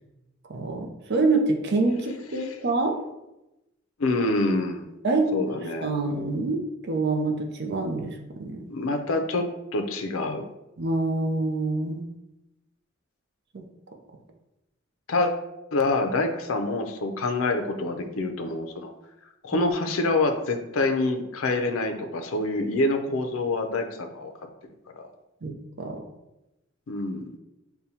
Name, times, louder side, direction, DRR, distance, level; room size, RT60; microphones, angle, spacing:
voice 1, 0.5-2.9 5.0-8.7 10.8-12.1 13.5-13.6 19.5-19.7 25.4-26.0, right 3 dB, 55° right, 2 dB, 0.6 m, -26 dB
voice 2, 4.0-4.9 5.3-5.9 8.7-10.4 15.1-15.3 15.7-18.9 19.4-24.3 25.0-25.1 26.9-27.3, left 2 dB, 85° left, 5 dB, 0.5 m, -26 dB
6.7 x 2.2 x 2.8 m, 0.94 s
head